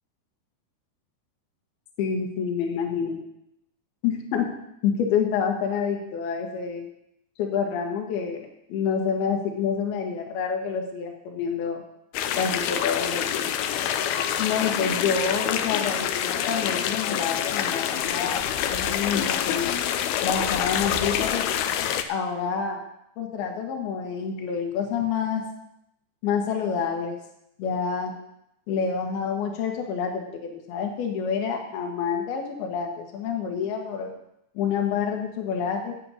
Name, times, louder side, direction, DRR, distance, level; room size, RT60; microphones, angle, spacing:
voice 1, 2.0-3.2 4.0-4.5 4.8-6.8 7.4-11.8 12.4-13.5 14.4-18.4 18.7-19.7 20.2-21.5 22.1-22.8 23.2-25.5 26.2-27.2 27.6-28.1 28.7-34.1 34.5-35.9, left 6 dB, 65° left, 2 dB, 3.2 m, -28 dB
sound 1, 12.1-22.0, left 10 dB, 85° left, 2.2 m, -26 dB
9.4 x 8.8 x 6.6 m, 0.81 s
omnidirectional pair, 5.1 m